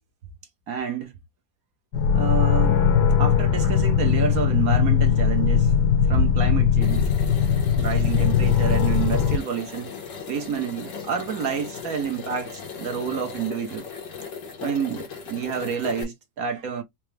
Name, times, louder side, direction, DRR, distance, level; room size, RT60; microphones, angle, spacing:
voice 1, 0.7-1.1 2.1-2.9 3.2-5.7 6.1-7.0 7.8-9.9 10.3-13.9 14.6-16.8, right 6 dB, 60° right, 1.2 m, -28 dB
sound 1, 1.9-9.4, left 7 dB, 70° left, 1.3 m, -20 dB
sound 2, 6.8-16.0, left 5 dB, 85° left, 1.9 m, -37 dB
4.8 x 2.1 x 3.1 m
omnidirectional pair, 1.9 m